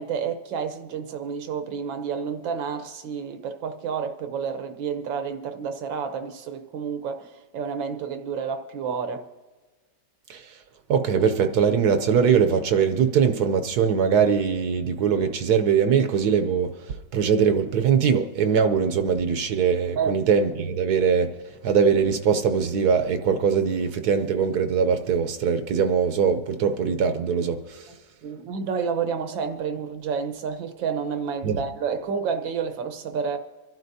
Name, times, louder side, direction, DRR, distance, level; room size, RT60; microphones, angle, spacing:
voice 1, 0.0-9.2 20.0-20.2 28.2-33.4, right 6 dB, 90° right, 1.7 m, -30 dB
voice 2, 10.9-21.3 21.6-27.9 31.4-31.6, right 6 dB, 65° right, 1.1 m, -22 dB
26.0 x 12.0 x 2.7 m
omnidirectional pair, 2.0 m